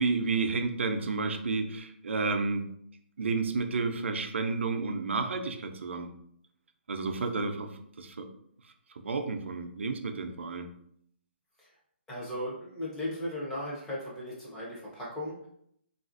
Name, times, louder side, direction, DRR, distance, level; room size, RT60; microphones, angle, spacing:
voice 1, 0.0-2.7 3.2-6.1 6.9-8.3 8.9-10.7, right 4 dB, 80° right, 5 dB, 0.4 m, -31 dB
voice 2, 12.1-15.5, left 1 dB, 5° left, -7 dB, 0.5 m, -37 dB
3.3 x 2.4 x 2.4 m, 0.70 s
hypercardioid pair, 170°, 6 cm